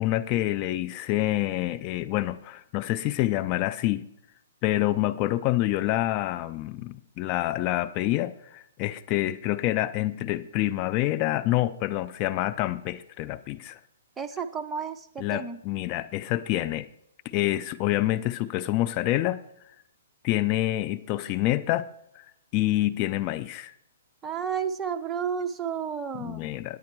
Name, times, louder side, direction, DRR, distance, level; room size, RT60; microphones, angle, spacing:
voice 1, 0.0-4.1 4.6-13.8 15.2-16.9 17.2-19.4 20.2-21.9 22.2-22.3 22.5-23.7 26.2-26.8, left 15 dB, 35° left, 0.5 m, -27 dB
voice 2, 14.2-15.6 24.2-26.5, right 7 dB, 10° right, 0.8 m, -32 dB
9.6 x 9.6 x 4.6 m
hypercardioid pair, 140°, 0 cm